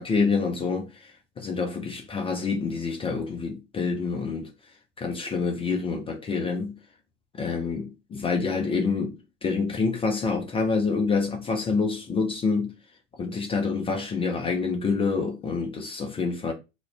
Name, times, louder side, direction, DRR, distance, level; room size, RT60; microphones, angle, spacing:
voice 1, 0.0-4.5 5.0-6.8 7.4-12.7 13.2-16.5, left 4 dB, 15° left, 0.3 m, -27 dB
2.3 x 2.1 x 3.0 m
figure-of-eight pair, 65°, 39 cm